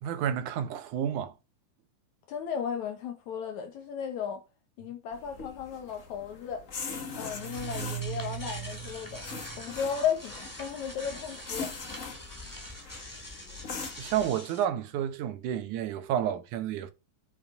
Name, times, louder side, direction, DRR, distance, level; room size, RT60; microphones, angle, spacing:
voice 1, 0.0-1.3 14.0-16.9, right 10 dB, 85° right, 2.5 m, -30 dB
voice 2, 2.3-4.4 4.8-6.6 7.2-9.2 9.6-11.7, left 7 dB, 75° left, 2.6 m, -34 dB
sound 1, 5.1-14.3, left 5 dB, 45° left, 1.1 m, -42 dB
sound 2, 7.1-14.6, right 4 dB, 5° left, 2.3 m, -41 dB
8.9 x 5.1 x 5.0 m
omnidirectional pair, 3.4 m